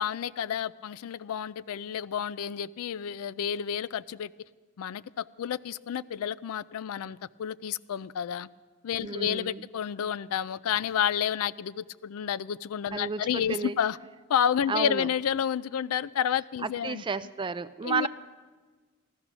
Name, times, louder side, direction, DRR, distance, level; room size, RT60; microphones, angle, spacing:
voice 1, 0.0-4.3 4.8-8.5 8.8-14.0 14.3-17.0 17.8-18.1, left 8 dB, 65° left, 0.4 m, -30 dB
voice 2, 9.0-9.6 12.9-13.7 14.7-15.1 16.6-18.1, right 4 dB, 20° right, 0.3 m, -32 dB
15.0 x 13.5 x 6.1 m
head